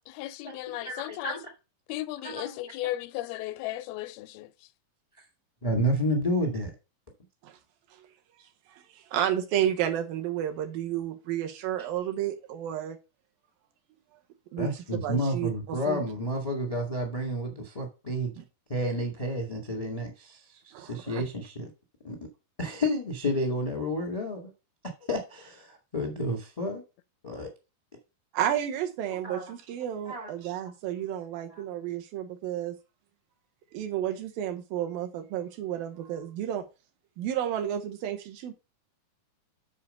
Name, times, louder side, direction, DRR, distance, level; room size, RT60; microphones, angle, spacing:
voice 1, 0.1-1.4 1.9-4.7, left 15 dB, 85° left, 2.5 m, -36 dB
voice 2, 0.8-1.4 2.2-2.5 5.6-6.7 14.6-18.3 18.7-21.7 22.0-22.2 22.6-24.5 25.1-26.8 27.2-27.5 29.2-29.5 30.0-30.3 31.5-31.6, equal, 25° left, 0.8 m, -30 dB
voice 3, 9.1-13.0 14.5-14.7 15.0-16.0 18.4-18.5 20.7-21.2 28.3-32.8 33.7-36.6 37.2-38.5, right 11 dB, 75° right, 2.6 m, -31 dB
7.6 x 4.8 x 5.4 m
omnidirectional pair, 4.2 m